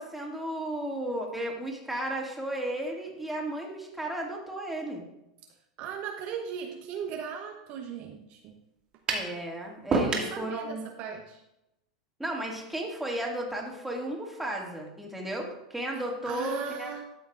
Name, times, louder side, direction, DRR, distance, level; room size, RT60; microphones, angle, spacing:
voice 1, 0.0-5.0 9.1-10.8 12.2-17.0, right 1 dB, 5° right, -1 dB, 2.2 m, -34 dB
voice 2, 5.8-8.6 9.1-9.2 10.0-11.4 16.2-17.0, right 7 dB, 50° right, 4 dB, 0.9 m, -38 dB
sound 1, 9.1-9.3 9.9-10.4, right 3 dB, 30° right, 2.2 m, -26 dB
12.5 x 6.9 x 2.5 m, 0.87 s
hypercardioid pair, 95°, 3 cm